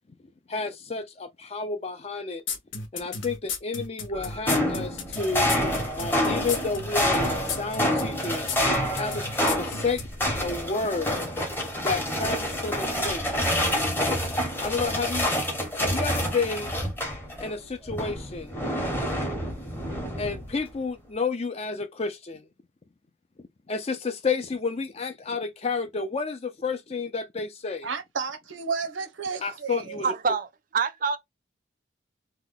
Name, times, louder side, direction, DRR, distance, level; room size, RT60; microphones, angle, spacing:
voice 1, 0.5-2.4 2.9-5.5 6.0-8.5 8.9-10.0 10.4-11.1 11.8-13.3 14.6-15.3 15.7-16.7 17.4-18.5 20.2-22.5 23.7-27.9 29.4-30.1, left 4 dB, 30° left, 0.5 m, -31 dB
sound 1, 2.5-10.3, left 5 dB, 75° left, 0.8 m, -33 dB
sound 2, 4.1-17.5 17.9-20.6, equal, 10° left, 0.8 m, -28 dB
voice 2, 27.8-30.1, right 5 dB, 75° right, 0.7 m, -32 dB
voice 3, 30.0-31.2, right 5 dB, 45° right, 0.4 m, -26 dB
2.9 x 2.2 x 3.8 m
head